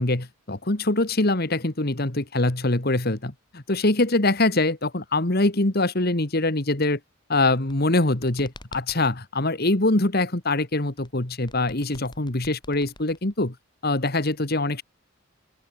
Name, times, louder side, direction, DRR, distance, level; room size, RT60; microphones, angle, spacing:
voice 1, 0.0-7.0 7.3-13.6 13.8-14.8, left 2 dB, 50° left, 1.9 m, -23 dB
sound 1, 7.7-9.2 11.0-13.5, left 2 dB, 20° left, 7.8 m, -47 dB
open air
head